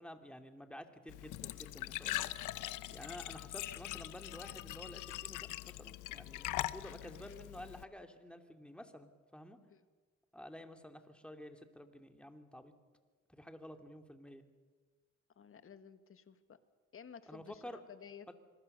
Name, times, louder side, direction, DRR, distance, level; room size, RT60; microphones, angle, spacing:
voice 1, 0.0-2.3 2.9-9.6 10.3-12.7 13.3-14.4 17.3-17.8 18.3-18.4, equal, 5° left, 6 dB, 2.7 m, -51 dB
Glass / Trickle dribble / Fill (with liquid), 1.1-7.8, left 15 dB, 90° left, 0.9 m, -42 dB
voice 2, 15.4-16.6 16.9-18.3, left 7 dB, 45° left, 11 dB, 1.8 m, -54 dB
26.0 x 22.0 x 6.8 m, 1.4 s
cardioid pair, 90°, 30 cm